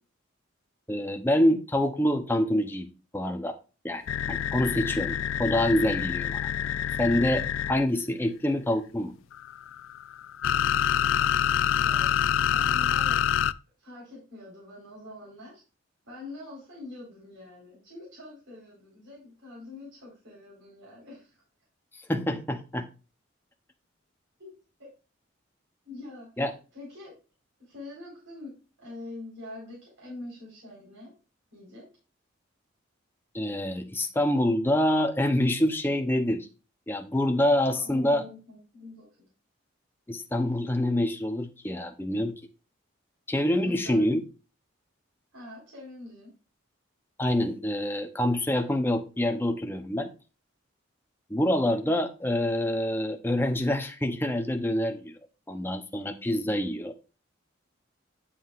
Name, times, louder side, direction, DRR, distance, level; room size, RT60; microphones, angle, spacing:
voice 1, 0.9-2.9 3.1-3.5 3.8-6.5 7.0-9.1 22.1-22.9 26.4-26.5 33.3-36.5 36.9-38.2 40.1-42.3 43.3-44.2 47.2-50.1 51.3-55.1 55.5-56.9, left 1 dB, 10° left, 6 dB, 0.7 m, -26 dB
sound 1, 4.1-7.8 9.3-13.5, left 9 dB, 80° left, 0.3 m, -26 dB
voice 2, 11.7-12.1 12.4-13.3 13.8-15.6 16.0-21.4 24.4-24.5 24.8-24.9 25.8-27.2 27.6-31.1 31.5-31.9 37.7-39.1 43.5-44.2 45.3-46.3, left 2 dB, 75° right, -5 dB, 4.4 m, -45 dB
9.9 x 7.5 x 2.5 m, 0.33 s
head